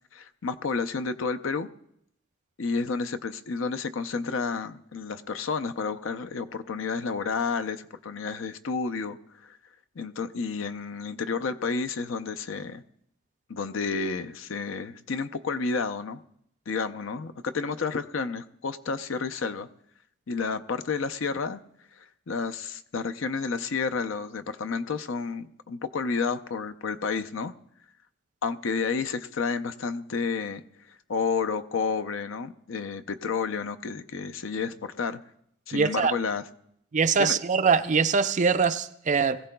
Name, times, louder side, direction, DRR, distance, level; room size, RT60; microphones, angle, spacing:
voice 1, 0.1-1.7 2.6-9.2 9.4-9.6 10.0-12.8 13.5-16.2 16.7-19.7 20.3-21.6 22.0-27.5 28.4-30.6 30.9-35.2 35.7-36.4 37.2-37.4, left 5 dB, 65° left, 0.6 m, -30 dB
voice 2, 35.7-36.1 36.9-39.4, right 5 dB, 35° right, 0.4 m, -23 dB
21.0 x 15.0 x 2.3 m
head